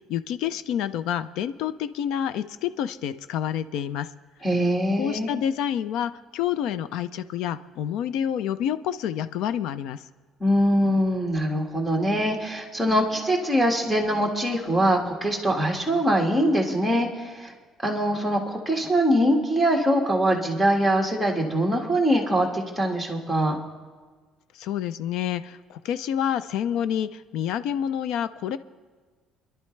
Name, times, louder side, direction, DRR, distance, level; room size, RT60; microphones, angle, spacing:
voice 1, 0.0-4.1 5.0-10.0 24.5-28.6, left 9 dB, 80° left, 14 dB, 0.5 m, -28 dB
voice 2, 4.4-5.3 10.4-17.5 17.8-23.6, equal, ahead, 0 dB, 1.8 m, -23 dB
28.0 x 11.5 x 3.3 m, 1.5 s
cardioid pair, 155°, 0 cm